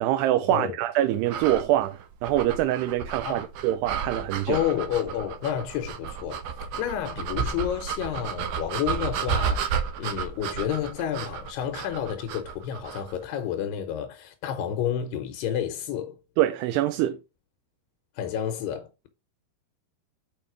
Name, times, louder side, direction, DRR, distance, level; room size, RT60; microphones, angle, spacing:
voice 1, 0.0-4.6 16.4-17.2, right 13 dB, 90° right, 2.7 m, -25 dB
sound 1, 1.3-13.2, right 7 dB, 70° right, 2.1 m, -32 dB
voice 2, 4.5-16.2 18.2-19.1, left 9 dB, 85° left, 2.9 m, -30 dB
7.2 x 4.9 x 4.6 m
omnidirectional pair, 4.6 m